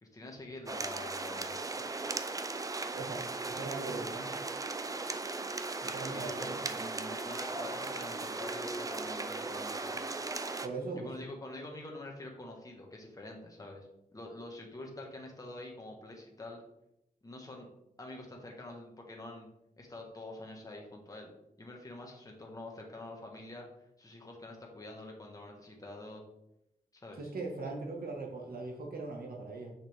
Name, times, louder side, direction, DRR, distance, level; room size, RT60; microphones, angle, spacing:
voice 1, 0.0-1.7 6.1-10.0 10.9-13.9 14.1-16.6 17.2-17.7 18.0-19.5 19.8-21.3 21.6-23.7 24.0-26.2 26.9-27.2, left 2 dB, 25° left, 0 dB, 1.3 m, -46 dB
sound 1, 0.7-10.7, right 3 dB, 25° right, 0.4 m, -37 dB
voice 2, 2.9-4.3 5.8-6.6 10.6-11.1 27.2-29.7, right 3 dB, 85° right, 1 dB, 1.6 m, -40 dB
6.2 x 6.1 x 3.5 m, 0.82 s
wide cardioid pair, 140°, 15 cm